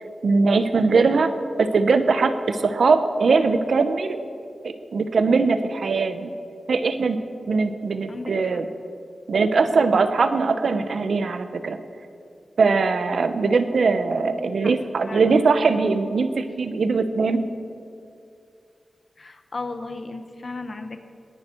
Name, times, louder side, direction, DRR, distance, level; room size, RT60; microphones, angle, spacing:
voice 1, 0.2-1.3 1.6-4.2 4.6-6.3 6.7-7.2 7.5-8.7 9.3-11.8 12.6-17.5, right 4 dB, 75° right, 10 dB, 0.8 m, -21 dB
voice 2, 8.1-8.6 9.6-10.0 14.2-14.7 15.0-15.4 19.2-21.0, left 3 dB, 45° left, 8 dB, 1.0 m, -36 dB
20.0 x 11.0 x 4.5 m, 2.4 s
wide cardioid pair, 135°, 0 cm